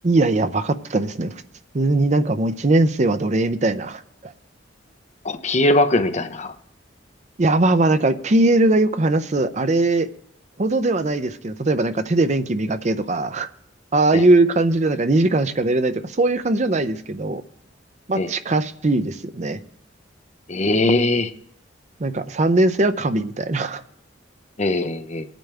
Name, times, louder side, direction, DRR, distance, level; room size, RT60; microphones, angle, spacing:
voice 1, 0.0-1.3 1.7-4.3 7.4-10.1 10.6-13.5 13.9-17.4 18.1-19.6 22.0-23.8, right 2 dB, 35° right, 11 dB, 0.6 m, -20 dB
voice 2, 5.2-6.5 14.1-14.3 18.2-18.3 20.5-21.3 24.6-25.3, left 2 dB, 35° left, 9 dB, 0.7 m, -20 dB
21.0 x 9.1 x 3.4 m, 0.70 s
head